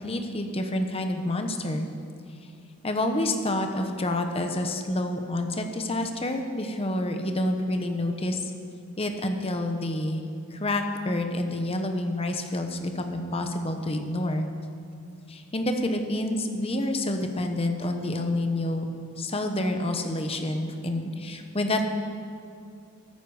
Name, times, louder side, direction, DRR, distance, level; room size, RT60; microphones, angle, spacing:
voice 1, 0.0-1.9 2.8-8.5 9.0-10.2 10.5-14.5 15.3-18.9 19.2-21.8, left 1 dB, 25° left, 5 dB, 1.0 m, -28 dB
15.0 x 14.0 x 5.0 m, 2.4 s
head